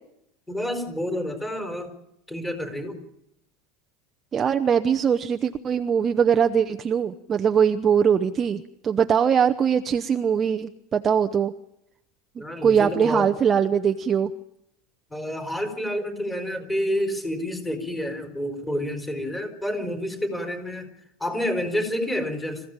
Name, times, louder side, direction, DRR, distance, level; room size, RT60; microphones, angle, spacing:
voice 1, 0.5-1.9 2.3-3.0 12.4-13.3 15.1-20.9 21.2-22.6, equal, 5° left, 6 dB, 4.3 m, -29 dB
voice 2, 4.3-11.5 12.6-14.3, right 7 dB, 20° right, 7 dB, 0.8 m, -21 dB
26.5 x 16.0 x 9.0 m, 0.83 s
supercardioid pair, 155°, 0 cm